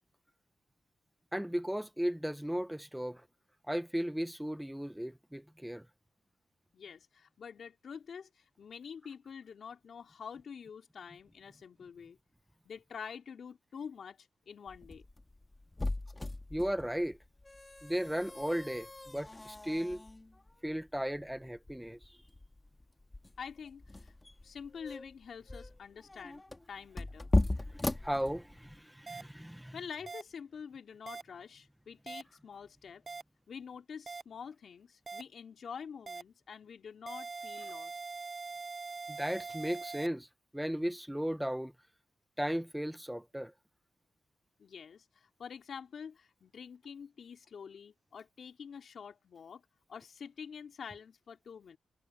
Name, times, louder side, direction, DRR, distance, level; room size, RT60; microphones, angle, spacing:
voice 1, 1.3-3.2 3.7-5.8 16.5-17.2 17.8-20.0 20.6-22.0 28.0-29.7 39.1-40.3 40.5-41.7 42.4-43.5, equal, 5° right, 1.2 m, -35 dB
voice 2, 6.7-12.2 12.6-15.0 23.4-24.1 24.4-27.3 29.6-33.0 33.5-37.9 44.6-49.6 49.9-51.8, left 6 dB, 65° left, 2.7 m, -47 dB
sound 1, 14.7-28.8, left 2 dB, 20° left, 2.4 m, -38 dB
sound 2, 29.1-29.2 30.1-30.2 31.1-31.2 32.1-32.2 33.1-33.2 34.1-34.2 35.1-35.2 36.1-36.2 37.1-40.1, right 4 dB, 40° right, 0.8 m, -42 dB
supercardioid pair, 55°, 0 cm